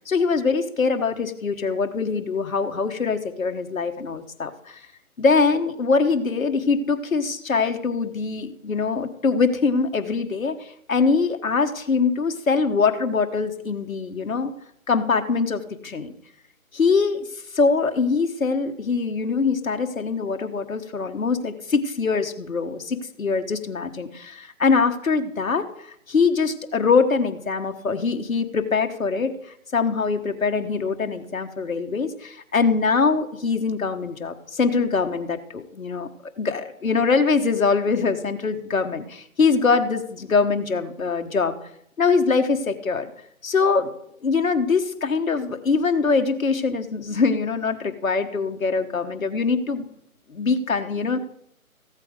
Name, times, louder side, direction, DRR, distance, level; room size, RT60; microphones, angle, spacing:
voice 1, 0.1-4.8 5.2-14.5 14.9-16.1 16.7-17.3 17.5-25.7 26.1-29.3 29.7-36.1 36.4-41.6 42.0-43.1 43.4-43.9 44.2-49.8 50.3-51.3, left 4 dB, 70° left, 7 dB, 1.4 m, -23 dB
15.0 x 8.2 x 5.1 m, 0.73 s
figure-of-eight pair, 150°, 43 cm